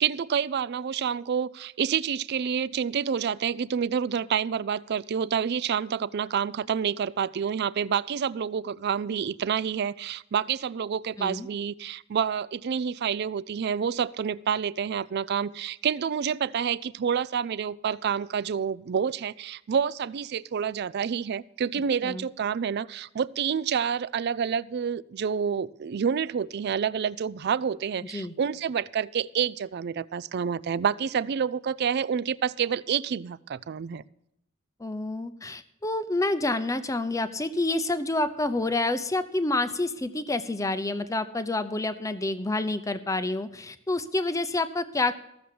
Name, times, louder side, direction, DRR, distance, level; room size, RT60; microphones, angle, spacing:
voice 1, 0.0-34.0, right 7 dB, 50° right, 19 dB, 0.4 m, -28 dB
voice 2, 11.2-11.5 22.0-22.3 28.0-28.3 34.8-45.2, left 2 dB, 15° left, 11 dB, 0.6 m, -28 dB
14.0 x 7.0 x 7.6 m, 0.80 s
head